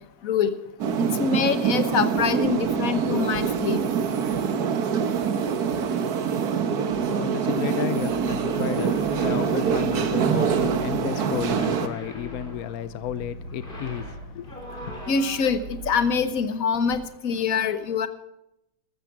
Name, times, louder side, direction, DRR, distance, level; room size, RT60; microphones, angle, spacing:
sound 1, 0.8-11.9, right 7 dB, 55° right, 1.4 m, -25 dB
voice 1, 1.2-3.8 15.1-18.1, left 6 dB, 50° left, 11 dB, 1.3 m, -24 dB
voice 2, 6.8-14.8, left 11 dB, 80° left, 15 dB, 0.8 m, -33 dB
sound 2, 8.0-16.3, right 2 dB, 85° right, 2.7 m, -42 dB
sound 3, 8.2-10.1 11.1-12.9 13.5-15.7, left 2 dB, 25° left, 3.4 m, -41 dB
14.0 x 13.0 x 5.9 m, 0.81 s
omnidirectional pair, 2.3 m